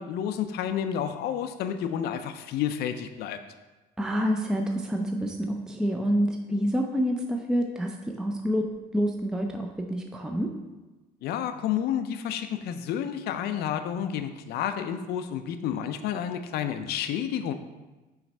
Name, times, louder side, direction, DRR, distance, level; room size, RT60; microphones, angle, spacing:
voice 1, 0.0-3.4 11.2-17.5, left 9 dB, 70° left, 9 dB, 0.4 m, -30 dB
voice 2, 4.0-10.5, equal, 5° right, 3 dB, 0.5 m, -28 dB
5.8 x 3.2 x 5.3 m, 1.1 s
cardioid pair, 110°, 17 cm